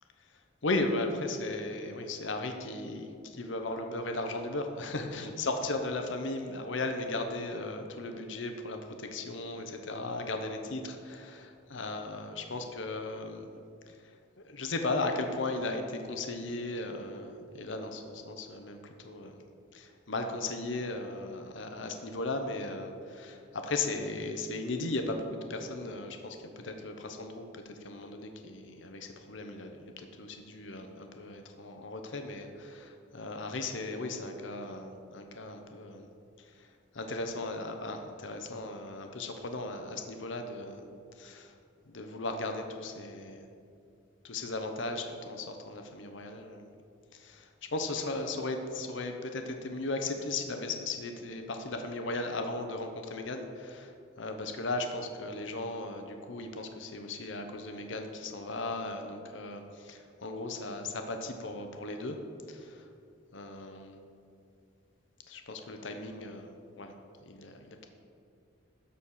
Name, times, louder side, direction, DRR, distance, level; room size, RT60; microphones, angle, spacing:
voice 1, 0.6-13.5 13.9-19.4 19.7-36.1 36.4-36.7 36.9-41.5 41.9-43.5 44.2-46.7 47.1-62.2 62.5-62.9 63.3-64.0 65.3-66.9 67.2-67.9, left 2 dB, 65° left, 5 dB, 0.8 m, -37 dB
13.0 x 4.3 x 6.5 m, 2.4 s
head